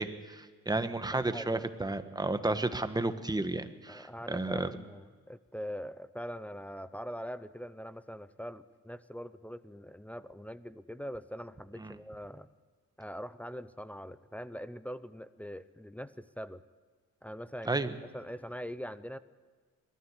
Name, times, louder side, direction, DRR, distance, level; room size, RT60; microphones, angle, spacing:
voice 1, 0.0-4.7 11.8-11.9 17.6-17.9, right 2 dB, 15° right, 10 dB, 1.3 m, -32 dB
voice 2, 1.1-1.7 3.9-12.5 13.0-16.6 17.2-19.2, equal, 5° left, 15 dB, 0.7 m, -43 dB
21.5 x 13.5 x 9.7 m, 1.5 s
cardioid pair, 90°, 30 cm